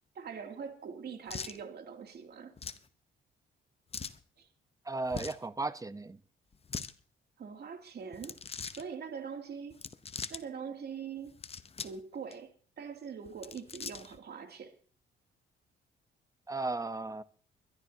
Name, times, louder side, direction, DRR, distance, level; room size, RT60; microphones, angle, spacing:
voice 1, 0.1-2.5 4.4-4.5 7.4-8.4 8.7-9.8 10.3-11.4 11.8-14.7, right 6 dB, 55° right, 4 dB, 2.8 m, -43 dB
sound 1, 1.3-1.6 2.6-2.9 3.9-4.2 5.1-5.4 6.5-6.9 8.1-8.8 9.7-10.4 11.2-12.0 12.3-12.4 13.3-14.2, left 5 dB, 30° left, 0.9 m, -41 dB
voice 2, 4.8-6.2 16.5-17.2, right 3 dB, 15° right, 14 dB, 0.9 m, -35 dB
23.5 x 12.0 x 2.8 m, 0.42 s
cardioid pair, 90°, 20 cm